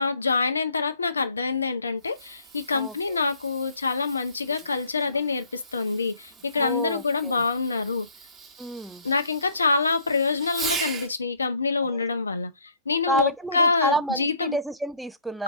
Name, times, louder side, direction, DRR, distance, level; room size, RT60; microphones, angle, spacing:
voice 1, 0.0-8.1 9.0-14.6, left 4 dB, 75° left, 0.6 m, -26 dB
Fireworks, 1.9-11.2 13.2-13.5 14.2-14.3, right 5 dB, 20° right, 1.2 m, -40 dB
voice 2, 2.7-3.2 6.5-7.4 8.6-9.0 11.8-12.0 13.1-15.4, right 1 dB, 5° right, 0.4 m, -29 dB
5.2 x 2.8 x 3.5 m
figure-of-eight pair, 90°, 0 cm